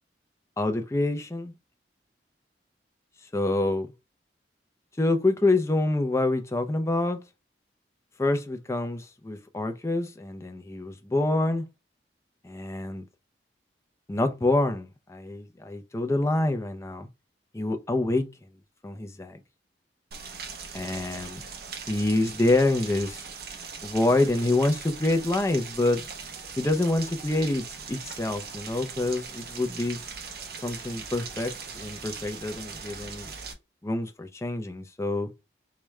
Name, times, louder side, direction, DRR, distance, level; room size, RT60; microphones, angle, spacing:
voice 1, 0.6-1.5 3.3-3.9 5.0-7.2 8.2-11.7 12.4-13.0 14.1-17.1 17.5-18.3 18.8-19.4 20.7-21.4 21.9-23.2 23.8-26.1 26.6-30.0 30.6-33.3 33.8-35.3, left 2 dB, 15° left, 0.4 m, -26 dB
Rain, 20.1-33.5, right 5 dB, 55° right, 0.6 m, -40 dB
4.7 x 2.2 x 3.1 m
head